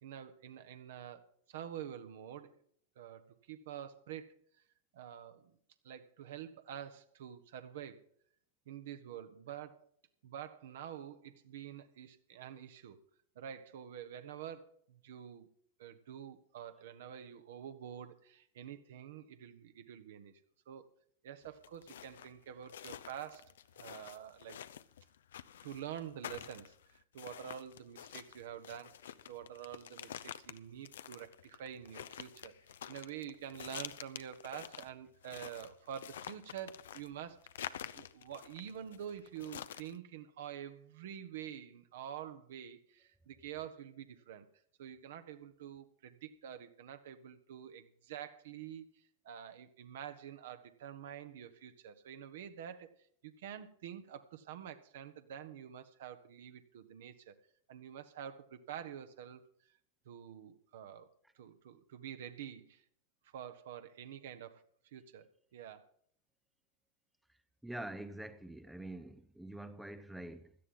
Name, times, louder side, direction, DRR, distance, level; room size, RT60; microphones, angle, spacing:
voice 1, 0.0-2.5 2.9-4.4 4.9-5.5 5.8-8.0 8.7-9.9 10.2-13.0 13.3-15.5 15.8-20.4 20.7-20.9 21.2-24.6 25.6-28.9 29.3-32.6 32.9-37.4 37.7-44.4 44.8-52.9 53.2-57.3 57.7-59.4 60.0-61.1 61.3-62.8 63.3-65.3 65.5-65.8, right 9 dB, 55° right, 1.3 m, -47 dB
sound 1, 21.4-40.0, left 10 dB, 60° left, 0.6 m, -48 dB
voice 2, 67.6-70.5, right 1 dB, 5° right, 0.7 m, -45 dB
16.5 x 12.5 x 3.9 m
figure-of-eight pair, 90°, 0 cm